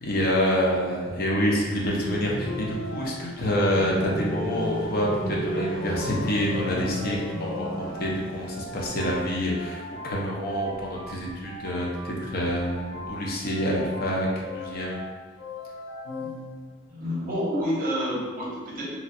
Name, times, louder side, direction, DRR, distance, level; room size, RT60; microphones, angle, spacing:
voice 1, 0.0-14.3 14.5-15.0, equal, 50° left, -3 dB, 0.5 m, -27 dB
voice 2, 0.7-1.1 16.2-16.3 16.9-19.0, equal, 45° right, -6 dB, 0.9 m, -29 dB
sound 1, 2.0-8.6 8.8-8.9 10.7-11.3 12.4-13.1, left 1 dB, 5° left, 1.1 m, -33 dB
sound 2, 2.4-17.0, left 2 dB, 85° left, 0.9 m, -40 dB
3.0 x 2.5 x 2.5 m, 1.4 s
head